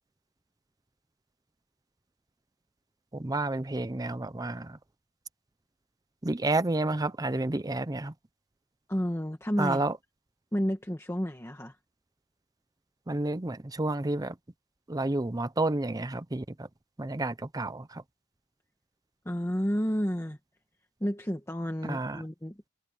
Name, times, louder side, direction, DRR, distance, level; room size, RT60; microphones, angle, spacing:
voice 1, 3.1-4.8 6.2-8.1 9.6-10.0 13.1-14.3 14.9-16.7 17.0-18.0 21.8-22.2, right 2 dB, 15° right, 0.5 m, -30 dB
voice 2, 8.9-9.8 10.5-11.8 19.2-20.4 21.0-22.6, equal, 10° left, 1.3 m, -31 dB
head